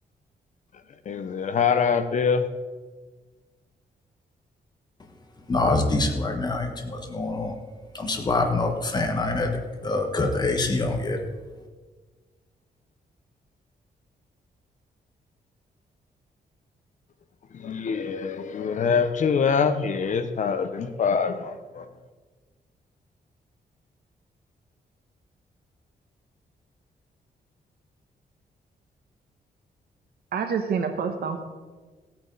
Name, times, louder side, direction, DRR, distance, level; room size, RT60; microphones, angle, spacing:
voice 1, 1.1-2.4 17.6-21.8, left 6 dB, 50° left, 10 dB, 0.8 m, -24 dB
voice 2, 5.5-7.5 7.9-11.2, left 2 dB, 25° left, 3 dB, 1.4 m, -25 dB
voice 3, 30.3-31.4, right 6 dB, 75° right, 6 dB, 1.2 m, -27 dB
15.5 x 8.9 x 4.1 m, 1.4 s
wide cardioid pair, 170°, 16 cm